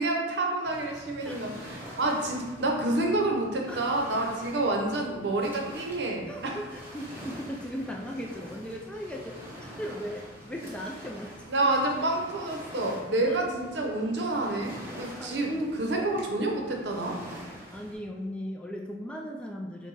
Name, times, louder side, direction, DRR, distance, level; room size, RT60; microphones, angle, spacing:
voice 1, 0.0-6.6 11.5-15.5 15.8-17.2, right 2 dB, 70° right, 1 dB, 0.7 m, -28 dB
Waves surf, 0.6-17.9, equal, 10° right, 0.9 m, -45 dB
voice 2, 6.3-11.3 11.6-11.7 13.3-13.4 13.8-14.2 15.2-16.1 17.7-19.9, equal, 5° left, 0 dB, 0.3 m, -37 dB
4.7 x 2.2 x 4.1 m, 1.3 s
head